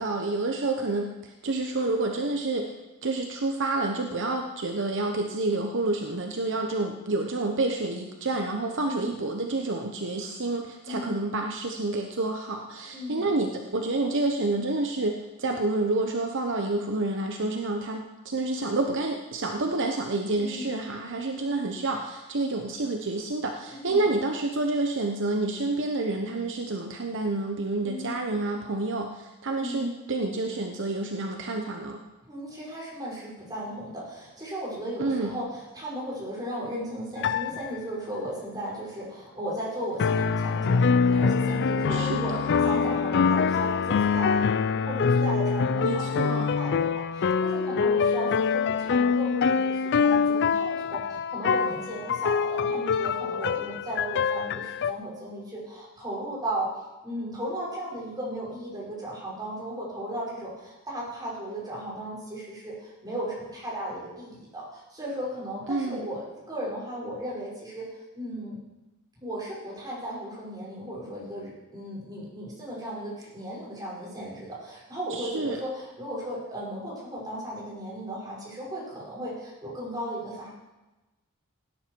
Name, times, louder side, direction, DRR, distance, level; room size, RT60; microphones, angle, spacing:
voice 1, 0.0-2.7 3.0-32.0 35.0-35.4 41.9-42.5 45.8-46.6 65.7-66.1 75.1-75.6, right 2 dB, 60° right, 3 dB, 1.0 m, -29 dB
voice 2, 8.8-9.1 10.9-11.2 12.9-13.3 20.4-20.7 23.7-24.0 27.8-28.2 29.6-30.0 32.3-56.7 57.0-67.9 68.1-68.6 69.2-80.5, right 1 dB, 20° right, -6 dB, 5.6 m, -36 dB
sound 1, 37.2-37.8 40.0-54.9, left 5 dB, 55° left, 0.4 m, -25 dB
17.5 x 10.0 x 4.6 m, 1.1 s
head